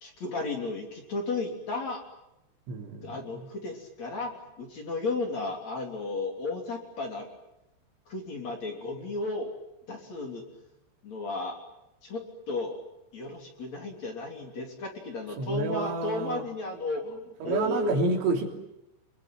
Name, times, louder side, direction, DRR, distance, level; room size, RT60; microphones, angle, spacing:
voice 1, 0.0-2.0 3.0-7.3 8.1-9.5 9.9-10.6 11.0-11.6 12.0-12.8 13.1-18.0, left 3 dB, 40° left, 2 dB, 4.0 m, -34 dB
voice 2, 2.7-3.2 15.4-16.4 17.4-18.5, right 3 dB, 80° right, 3 dB, 5.8 m, -29 dB
28.0 x 22.5 x 9.2 m, 0.89 s
omnidirectional pair, 5.7 m